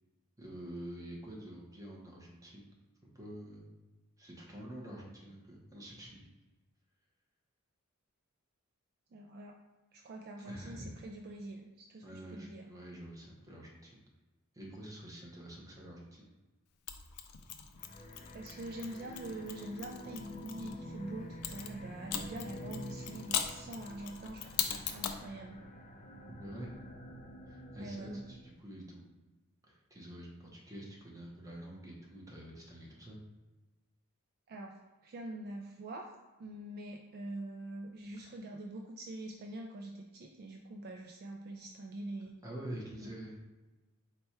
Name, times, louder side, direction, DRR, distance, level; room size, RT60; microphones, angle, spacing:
voice 1, 0.4-2.7 3.1-3.7 4.2-6.3 10.4-10.9 12.0-14.0 14.5-16.3 26.2-26.8 27.5-29.3 29.6-33.2 38.2-38.3 42.4-43.5, right 1 dB, 15° right, -3 dB, 0.9 m, -47 dB
voice 2, 9.1-9.6 9.9-12.7 18.3-25.6 27.8-28.2 34.5-34.8 35.0-36.1 36.4-42.4 43.0-43.1, right 1 dB, 45° right, 2 dB, 0.3 m, -44 dB
Mechanisms, 16.9-20.7 21.4-25.3, left 9 dB, 85° left, 0.4 m, -40 dB
sound 1, 17.8-28.5, equal, 35° left, 0.5 m, -48 dB
4.3 x 2.2 x 4.3 m, 1.2 s
head